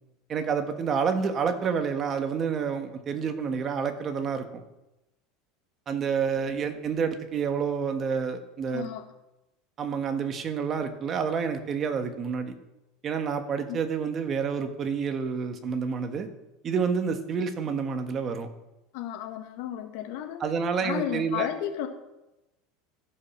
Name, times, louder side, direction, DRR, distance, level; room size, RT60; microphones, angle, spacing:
voice 1, 0.3-4.6 5.9-8.9 9.8-12.5 13.0-16.3 16.6-18.5 20.4-21.5, right 6 dB, 35° right, 7 dB, 1.4 m, -29 dB
voice 2, 8.7-9.1 13.7-13.8 18.9-20.4 20.8-21.9, left 11 dB, 70° left, 5 dB, 1.6 m, -33 dB
14.5 x 5.6 x 6.0 m, 0.95 s
supercardioid pair, 130°, 0 cm